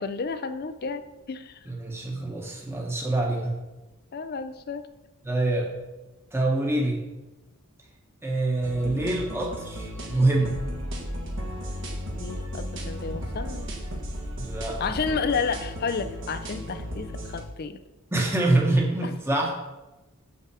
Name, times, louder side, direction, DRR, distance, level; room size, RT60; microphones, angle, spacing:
voice 1, 0.0-1.6 4.1-4.9 12.1-13.7 14.8-17.8 19.0-19.4, left 5 dB, 45° left, 11 dB, 0.4 m, -31 dB
voice 2, 1.6-3.5 5.2-5.7 6.3-7.0 8.2-10.6 14.4-14.9 18.1-19.5, right 2 dB, 10° right, -1 dB, 1.1 m, -25 dB
sound 1, 8.6-17.4, equal, 55° right, 1.4 m, -35 dB
7.1 x 5.7 x 4.8 m, 1.1 s
head